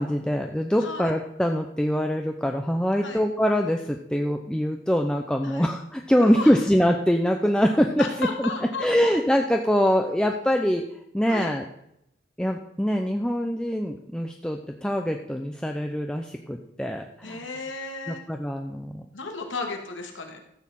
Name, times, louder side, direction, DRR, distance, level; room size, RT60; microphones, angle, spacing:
voice 1, 0.0-8.5 8.8-10.8 11.1-11.6 12.4-17.4 18.1-19.1, equal, 5° left, 3 dB, 0.6 m, -24 dB
voice 2, 0.8-1.1 3.0-3.2 5.4-5.7 6.2-6.5 8.0-9.1 11.3-11.5 17.2-18.2 19.1-20.4, left 3 dB, 90° left, 3 dB, 2.3 m, -34 dB
14.0 x 6.4 x 7.4 m, 0.79 s
head